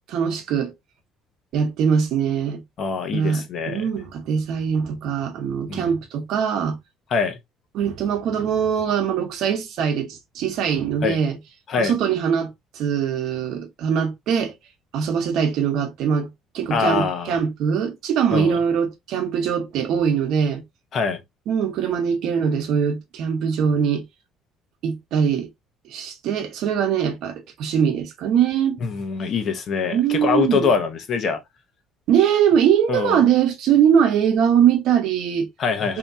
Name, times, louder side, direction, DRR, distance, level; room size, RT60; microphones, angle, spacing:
voice 1, 0.1-0.7 1.5-2.6 3.1-6.8 7.7-11.4 11.8-14.5 14.9-20.6 21.5-24.0 24.8-25.5 25.9-28.8 29.9-30.7 32.1-35.5 35.9-36.0, right 8 dB, 60° right, 1.0 m, -22 dB
voice 2, 2.8-3.8 5.7-5.9 7.1-7.4 11.0-11.2 11.7-11.9 16.7-17.3 18.3-18.6 20.9-21.2 28.8-31.4 32.9-33.2 35.6-36.0, left 5 dB, 40° left, 0.8 m, -24 dB
3.4 x 2.9 x 2.6 m
cardioid pair, 165°, 0 cm